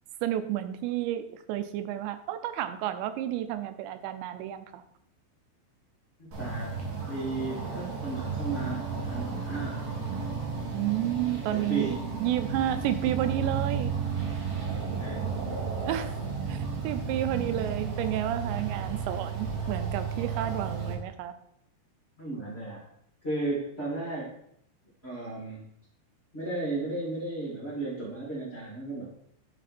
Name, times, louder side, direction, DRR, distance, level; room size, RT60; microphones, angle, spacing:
voice 1, 0.2-4.8 10.7-13.9 15.8-16.1 16.5-21.4, right 12 dB, 90° right, 10 dB, 2.9 m, -31 dB
voice 2, 6.2-6.8 7.1-9.8 11.5-12.0 14.5-15.3 16.1-16.2 22.2-22.8 23.2-24.3 25.0-25.6 26.3-29.3, right 2 dB, 25° left, -8 dB, 1.3 m, -35 dB
sound 1, 6.3-20.9, right 5 dB, 65° right, 1.5 m, -33 dB
11.0 x 3.8 x 4.2 m, 0.72 s
omnidirectional pair, 5.0 m